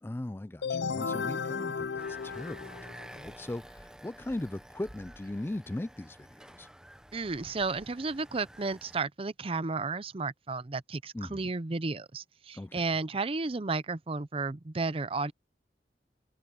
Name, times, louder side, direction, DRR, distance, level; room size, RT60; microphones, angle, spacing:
voice 1, 0.0-6.7 11.1-11.5 12.5-12.9, left 1 dB, 15° left, 0.3 m, -39 dB
sound 1, 0.6-3.3, left 5 dB, 80° left, 0.7 m, -34 dB
sound 2, 2.0-9.0, equal, 5° right, 0.9 m, -51 dB
voice 2, 7.1-15.3, right 3 dB, 30° right, 0.6 m, -33 dB
head